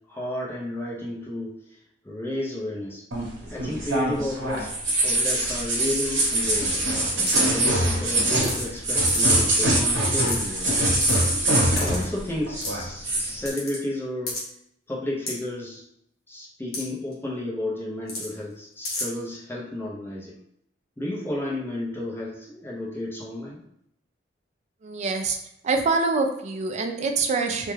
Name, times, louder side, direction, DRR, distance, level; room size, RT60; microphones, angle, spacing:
voice 1, 0.1-1.6 2.0-3.0 3.5-6.9 7.5-10.9 11.8-14.4 14.9-15.8 16.3-20.4 21.0-23.6, left 1 dB, 15° left, -4 dB, 0.5 m, -32 dB
sound 1, 3.1-12.2 12.5-13.3, right 1 dB, 80° right, 0.8 m, -23 dB
sound 2, 7.3-7.5 8.4-8.8 9.1-9.4 9.8-9.9 10.1-10.7 11.0-11.3 11.8-12.1 12.6-12.8 13.5-13.8 14.3-14.4 15.3-15.4 16.7-16.8 17.1-17.2 18.1-18.3 18.8-19.0, left 2 dB, 55° left, 0.9 m, -31 dB
voice 2, 24.8-25.4 25.6-27.7, right 4 dB, 40° right, 5 dB, 0.3 m, -25 dB
2.3 x 2.1 x 3.1 m, 0.72 s
head